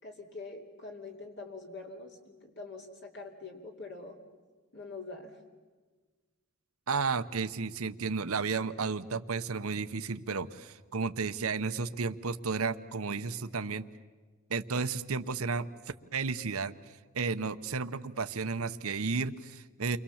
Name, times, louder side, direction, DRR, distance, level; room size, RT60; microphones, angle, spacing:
voice 1, 0.0-4.2 4.7-5.4, left 3 dB, 55° left, 1 dB, 2.9 m, -44 dB
voice 2, 6.9-13.9 14.5-15.7 16.1-16.7 17.1-20.0, right 4 dB, 75° right, 10 dB, 0.9 m, -33 dB
29.5 x 23.5 x 7.2 m, 1.4 s
head